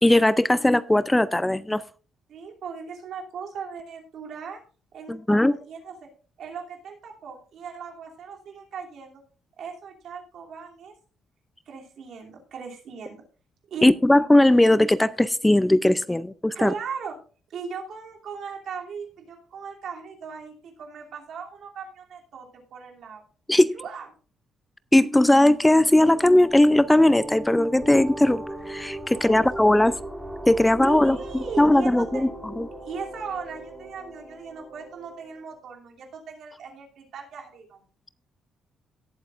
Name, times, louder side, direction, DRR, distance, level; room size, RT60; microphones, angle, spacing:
voice 1, 0.0-1.8 5.1-5.5 13.8-16.7 23.5-23.7 24.9-30.0 30.5-32.3 32.6-32.7, left 1 dB, 10° left, 16 dB, 0.4 m, -19 dB
voice 2, 2.3-4.6 4.9-6.1 6.4-9.2 9.6-10.9 11.7-13.2 13.7-13.9 16.5-17.2 17.5-23.2 23.7-24.1 29.1-29.4 30.8-32.2 32.8-37.8, right 6 dB, 70° right, 0 dB, 2.8 m, -38 dB
sound 1, 25.3-35.6, right 1 dB, 10° right, 4.3 m, -38 dB
18.0 x 8.0 x 2.5 m, 0.40 s
cardioid pair, 90°, 0 cm